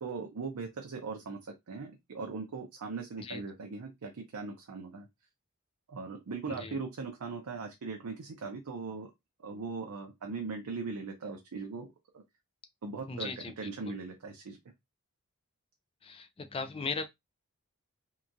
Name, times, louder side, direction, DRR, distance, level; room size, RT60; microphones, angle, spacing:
voice 1, 0.0-5.1 5.9-9.1 9.4-12.2 12.8-14.6, right 4 dB, 80° right, 0.5 m, -39 dB
voice 2, 13.1-13.5 16.0-17.1, left 4 dB, 25° left, 0.3 m, -37 dB
2.8 x 2.2 x 2.5 m
head